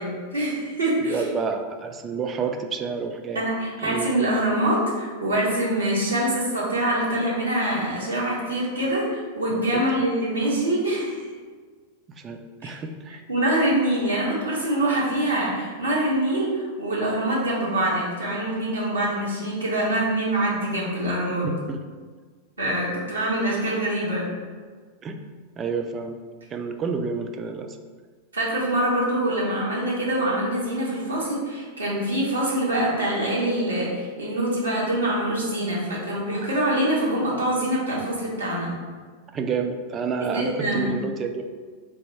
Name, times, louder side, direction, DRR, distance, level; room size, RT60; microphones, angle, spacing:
voice 1, 0.0-1.2 3.3-11.2 12.6-12.7 13.3-21.5 22.6-24.3 28.3-38.7 40.2-40.9, right 1 dB, 75° right, -6 dB, 1.2 m, -25 dB
voice 2, 1.1-3.4 3.8-4.3 9.5-9.8 12.1-13.2 21.4-21.8 25.0-25.2 25.6-26.2 26.5-27.8 39.3-41.4, right 5 dB, 25° right, 6 dB, 0.4 m, -29 dB
3.3 x 2.6 x 4.3 m, 1.5 s
figure-of-eight pair, 90°, 0 cm